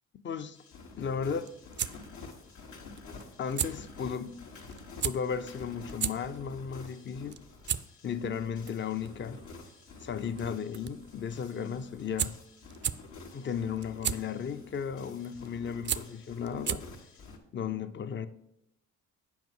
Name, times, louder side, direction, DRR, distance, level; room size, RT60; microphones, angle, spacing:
voice 1, 0.2-0.6 1.0-1.5 3.4-4.4 5.0-7.4 8.0-9.4 10.0-12.4 13.3-16.8 17.5-18.3, left 7 dB, 40° left, 0.6 m, -35 dB
sound 1, 0.5-17.4, left 4 dB, 75° left, 1.7 m, -49 dB
sound 2, 1.2-17.1, right 9 dB, 40° right, 0.4 m, -38 dB
7.4 x 5.3 x 6.1 m
cardioid pair, 90°, 30 cm